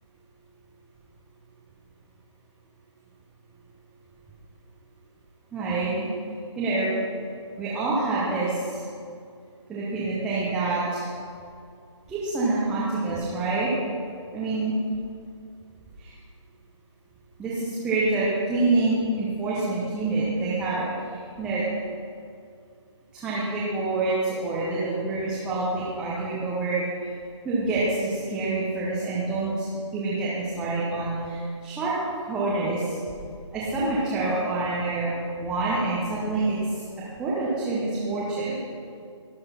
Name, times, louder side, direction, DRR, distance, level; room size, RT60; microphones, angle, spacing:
voice 1, 5.5-6.1 6.6-6.9 7.6-8.8 9.7-11.1 12.1-13.7 14.3-14.7 16.0-16.1 17.4-21.6 23.1-26.8 27.4-31.9 32.2-33.0 33.5-35.1 35.4-36.6 37.2-38.6, right 2 dB, 5° right, -9 dB, 0.9 m, -27 dB
12.0 x 6.5 x 5.7 m, 2.3 s
figure-of-eight pair, 150°, 16 cm